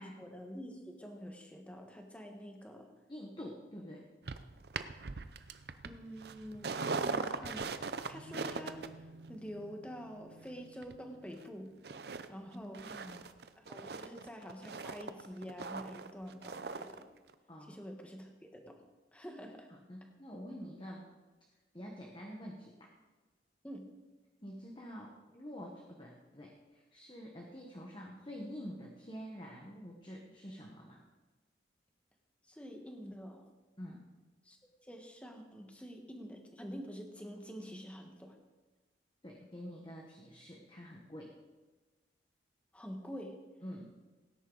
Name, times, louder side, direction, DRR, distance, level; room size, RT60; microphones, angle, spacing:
voice 1, 0.0-2.9 5.8-11.7 12.3-12.9 13.7-17.1 17.6-18.8 19.1-19.7 23.6-23.9 32.5-33.5 34.4-34.6 34.8-38.4 42.7-43.5, equal, 5° left, 3 dB, 1.4 m, -47 dB
voice 2, 3.1-4.1 12.4-13.3 17.5-17.8 19.7-21.1 21.7-22.7 24.4-31.0 33.8-34.1 39.2-41.3 43.6-43.9, equal, 25° left, -1 dB, 1.3 m, -47 dB
sound 1, 4.3-11.5 11.8-12.3 12.5-17.0 17.3-17.4, right 4 dB, 60° right, 0.6 m, -41 dB
17.5 x 10.0 x 4.0 m, 1.2 s
head